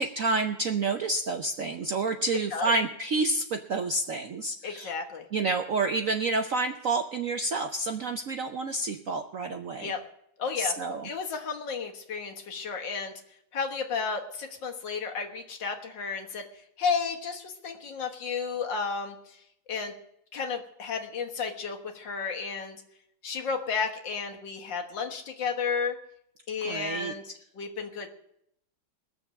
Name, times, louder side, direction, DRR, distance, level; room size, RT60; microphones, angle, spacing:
voice 1, 0.0-4.9 5.3-9.9 10.6-11.1 26.6-27.1, right 3 dB, 65° right, 5 dB, 0.8 m, -29 dB
voice 2, 2.3-2.7 4.6-5.3 9.8-10.0 10.4-10.8 11.0-13.1 13.5-16.4 16.8-19.4 19.7-19.9 20.3-22.8 23.2-26.0 26.5-28.1, left 5 dB, 65° left, 3 dB, 2.0 m, -32 dB
21.0 x 7.0 x 6.2 m, 0.75 s
omnidirectional pair, 2.2 m